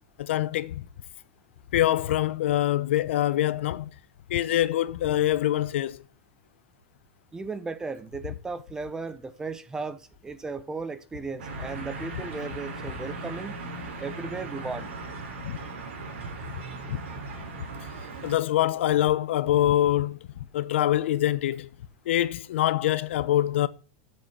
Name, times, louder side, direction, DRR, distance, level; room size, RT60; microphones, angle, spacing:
voice 1, 0.2-0.8 1.7-3.9 4.3-6.0 15.4-15.6 16.9-17.0 18.2-20.2 20.5-21.7 22.1-23.7, left 13 dB, 80° left, 0.9 m, -24 dB
voice 2, 7.3-13.6 14.0-14.9, right 4 dB, 10° right, 0.7 m, -36 dB
sound 1, 11.4-18.4, right 3 dB, 90° right, 3.7 m, -38 dB
7.7 x 6.9 x 7.4 m
supercardioid pair, 155°, 6 cm